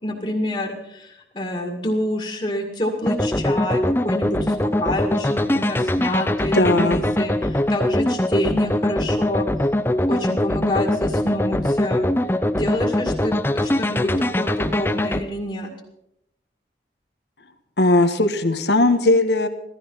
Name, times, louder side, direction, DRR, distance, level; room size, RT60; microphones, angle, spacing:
voice 1, 0.0-9.5 10.1-12.1 12.5-15.7, left 1 dB, 30° left, 1 dB, 2.1 m, -27 dB
sound 1, 3.0-15.2, left 1 dB, 15° left, 0.6 m, -22 dB
voice 2, 6.5-7.0 17.8-19.5, left 2 dB, 75° left, 8 dB, 1.5 m, -18 dB
17.0 x 14.0 x 5.6 m, 0.81 s
head